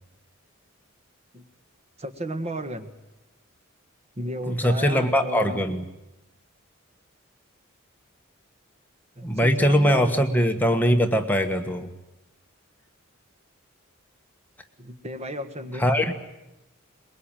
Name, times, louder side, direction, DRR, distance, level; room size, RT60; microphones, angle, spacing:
voice 1, 2.0-2.9 4.2-5.6 9.2-10.2 14.8-15.8, equal, 30° right, 8 dB, 1.5 m, -33 dB
voice 2, 4.5-5.8 9.2-11.9 15.8-16.1, equal, 10° left, 5 dB, 1.4 m, -21 dB
23.0 x 22.0 x 9.0 m, 0.94 s
head